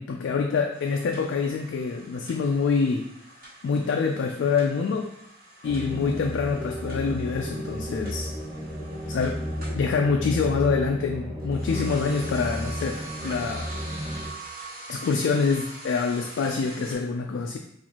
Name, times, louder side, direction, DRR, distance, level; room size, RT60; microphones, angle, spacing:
voice 1, 0.0-3.1 3.6-5.1 5.6-8.3 9.1-9.4 9.7-13.7 14.9-17.6, left 5 dB, 60° left, 2 dB, 0.3 m, -26 dB
sound 1, 0.7-9.8 11.4-17.0, right 2 dB, 45° right, 1.5 m, -44 dB
sound 2, 5.6-14.3, equal, 15° right, 0.8 m, -33 dB
4.2 x 2.4 x 2.9 m, 0.73 s
head